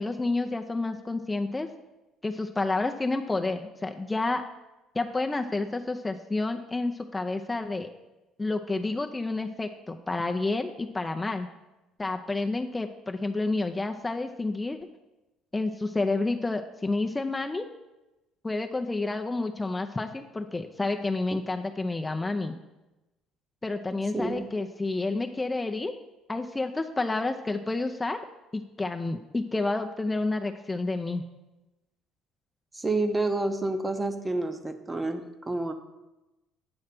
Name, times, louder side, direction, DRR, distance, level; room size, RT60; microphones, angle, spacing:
voice 1, 0.0-1.7 2.2-4.4 4.9-7.9 8.4-11.5 12.0-14.8 15.5-17.6 18.4-22.5 23.6-25.9 26.3-28.2 28.5-31.2, left 2 dB, 20° left, 5 dB, 0.5 m, -29 dB
voice 2, 24.1-24.5 32.7-35.7, right 2 dB, 20° right, 7 dB, 0.7 m, -29 dB
8.6 x 3.2 x 5.9 m, 1.0 s
hypercardioid pair, 65°, 0 cm